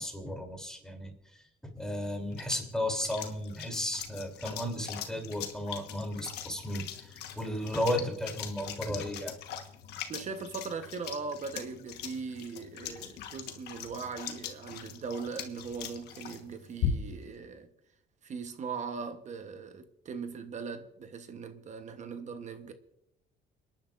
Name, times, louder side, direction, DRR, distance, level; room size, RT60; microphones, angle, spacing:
voice 1, 0.0-9.3, left 1 dB, 5° left, 3.2 m, -34 dB
sound 1, 1.8-17.3, left 8 dB, 75° left, 1.4 m, -41 dB
voice 2, 10.1-17.7 18.2-22.7, right 5 dB, 45° right, 1.1 m, -40 dB
30.0 x 10.5 x 2.6 m
cardioid pair, 110°, 17 cm